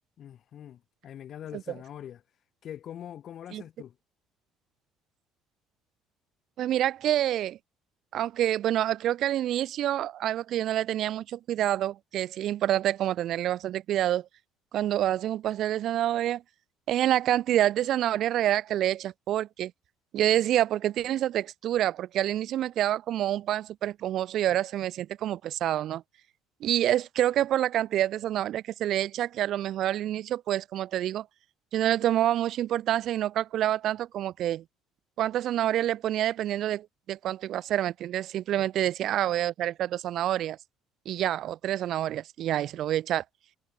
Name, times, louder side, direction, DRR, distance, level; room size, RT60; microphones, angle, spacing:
voice 1, 0.2-2.2 2.6-3.9 38.6-38.7, left 10 dB, 45° left, 1.4 m, -43 dB
voice 2, 6.6-7.6 8.1-14.3 14.7-16.4 16.9-19.7 20.1-26.0 26.6-31.3 31.7-34.6 35.2-40.6 41.1-43.2, right 12 dB, 55° right, 0.3 m, -27 dB
cardioid pair, 135°, 0 cm